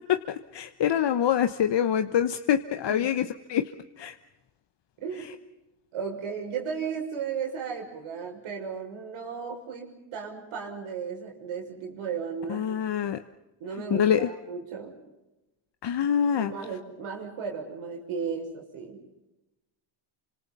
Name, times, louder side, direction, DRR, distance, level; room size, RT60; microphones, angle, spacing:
voice 1, 0.1-3.7 4.0-4.1 12.5-13.2 13.9-14.3 15.8-16.5, left 9 dB, 60° left, 9 dB, 1.2 m, -25 dB
voice 2, 5.0-5.3 5.9-12.8 13.6-15.0 16.3-19.0, right 6 dB, 80° right, 2 dB, 6.5 m, -35 dB
28.5 x 26.0 x 5.5 m, 0.98 s
supercardioid pair, 75°, 48 cm